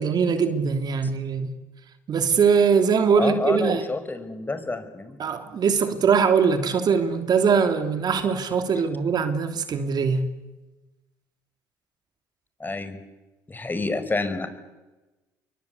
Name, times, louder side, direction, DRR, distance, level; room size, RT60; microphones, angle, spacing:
voice 1, 0.0-1.5 2.1-3.9 5.2-10.3, right 6 dB, 50° right, 3.1 m, -21 dB
voice 2, 3.2-5.2 12.6-13.0 13.5-14.5, left 3 dB, 20° left, 5.4 m, -28 dB
29.5 x 23.5 x 8.4 m
hypercardioid pair, 60°, 9 cm